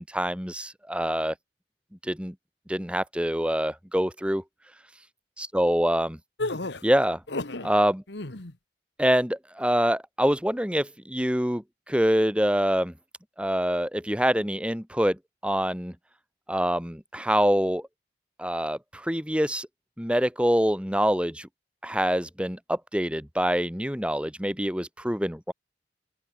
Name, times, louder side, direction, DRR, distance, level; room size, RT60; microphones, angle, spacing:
voice 1, 0.0-1.3 2.0-2.3 2.7-4.4 5.5-6.2 6.8-7.2 7.6-8.0 9.0-12.9 13.4-15.2 15.4-15.9 16.5-17.9 18.4-19.7 20.0-21.5 21.8-25.5, equal, 5° right, 2.5 m, -25 dB
sound 1, 6.4-7.7 8.1-8.5, left 2 dB, 75° left, 1.8 m, -32 dB
open air
head